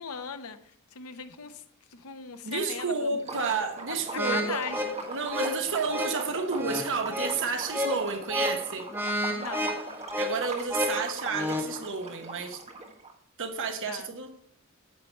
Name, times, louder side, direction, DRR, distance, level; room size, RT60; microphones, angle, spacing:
voice 1, 0.0-1.6 1.9-3.4 3.9-4.9 9.3-9.7 13.9-14.1, left 6 dB, 75° left, 0.9 m, -39 dB
voice 2, 2.4-4.6 5.1-8.9 10.2-12.6 13.4-14.3, right 4 dB, 60° right, 1.1 m, -31 dB
Liquid, 3.2-13.1, right 3 dB, 30° right, 1.4 m, -41 dB
sound 1, 4.2-11.8, left 1 dB, 10° right, 1.2 m, -32 dB
9.6 x 7.9 x 3.3 m
head